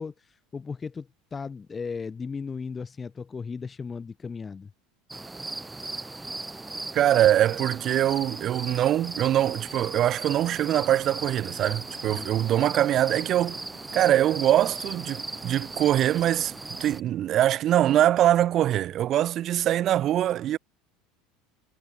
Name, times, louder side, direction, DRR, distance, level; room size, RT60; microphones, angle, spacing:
voice 1, 0.0-4.7 12.0-12.6, left 5 dB, 25° left, 2.4 m, -36 dB
sound 1, 5.1-17.0, right 2 dB, 10° right, 2.9 m, -37 dB
voice 2, 6.9-13.6 13.9-16.5 16.8-20.6, right 12 dB, 50° right, 0.4 m, -23 dB
sound 2, 8.8-16.8, right 19 dB, 80° right, 4.9 m, -54 dB
hypercardioid pair, 90°, 0 cm